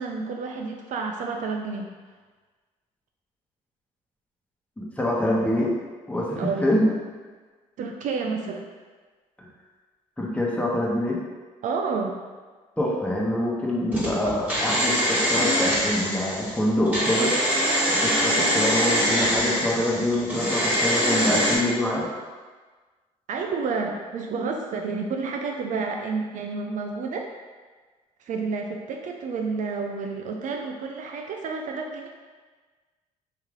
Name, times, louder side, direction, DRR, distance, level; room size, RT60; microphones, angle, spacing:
voice 1, 0.0-1.9 6.4-6.7 7.8-8.7 11.6-12.2 23.3-27.3 28.2-32.1, right 4 dB, 60° right, 2 dB, 0.4 m, -30 dB
voice 2, 4.8-5.7 6.1-6.9 9.4-9.5 10.2-11.2 12.8-17.3 17.9-22.1, left 1 dB, 10° left, -4 dB, 1.0 m, -25 dB
sound 1, 13.9-21.6, equal, 10° right, 1.4 m, -24 dB
3.2 x 2.7 x 3.7 m, 1.4 s
supercardioid pair, 70°, 15 cm